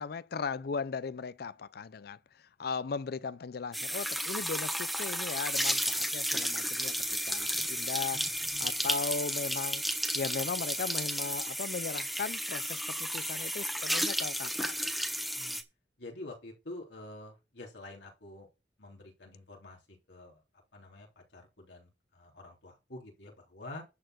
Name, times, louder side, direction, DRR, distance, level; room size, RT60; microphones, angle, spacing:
voice 1, 0.0-2.2 2.6-7.0 7.2-9.8 10.1-14.9, left 5 dB, 60° left, 0.5 m, -37 dB
sound 1, 3.7-15.6, equal, ahead, 1.2 m, -33 dB
voice 2, 16.0-18.5 18.8-20.4 20.7-23.8, left 2 dB, 85° left, 3.4 m, -47 dB
11.0 x 4.4 x 7.7 m
head